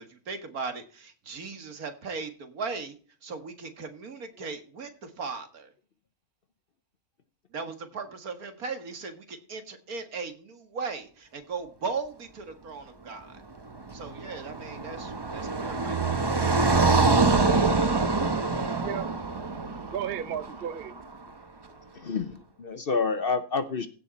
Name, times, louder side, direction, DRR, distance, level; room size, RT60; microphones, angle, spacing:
voice 1, 0.0-3.0 3.2-5.7 7.5-13.4 13.9-16.9, right 4 dB, 80° right, 2.2 m, -38 dB
Car passing by, 13.8-21.0, right 3 dB, 20° right, 0.7 m, -25 dB
voice 2, 18.4-19.1 19.5-20.9, right 9 dB, 50° right, 0.9 m, -35 dB
voice 3, 21.9-23.9, left 4 dB, 50° left, 0.9 m, -28 dB
16.0 x 5.4 x 4.1 m
omnidirectional pair, 1.5 m